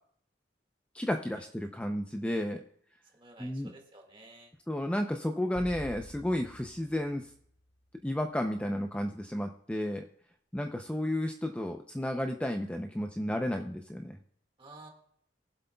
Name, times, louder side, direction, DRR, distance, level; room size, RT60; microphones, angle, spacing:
voice 1, 0.9-2.6 3.4-3.7 4.7-7.3 8.0-10.1 10.5-14.2, left 1 dB, 5° left, 4 dB, 0.5 m, -32 dB
voice 2, 3.1-4.5 14.6-14.9, right 2 dB, 30° right, 1 dB, 1.9 m, -52 dB
sound 1, 5.6-8.1, equal, 90° left, 1.6 m, -48 dB
22.5 x 7.8 x 2.3 m, 0.66 s
head